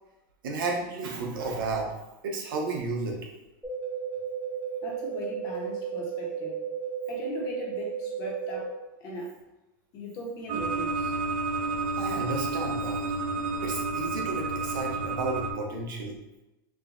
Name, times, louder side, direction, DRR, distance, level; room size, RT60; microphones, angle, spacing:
voice 1, 0.4-1.9 2.2-3.2 12.0-13.0 13.6-16.2, right 3 dB, 75° right, 0 dB, 0.8 m, -32 dB
sound 1, 3.6-8.6, right 7 dB, 5° right, 0.8 m, -34 dB
voice 2, 4.8-6.7 7.1-9.3 9.9-11.1, left 1 dB, 30° left, -2 dB, 0.8 m, -38 dB
sound 2, 10.5-15.5, right 3 dB, 40° right, 0.4 m, -30 dB
4.6 x 2.2 x 2.4 m, 0.95 s
supercardioid pair, 165°, 11 cm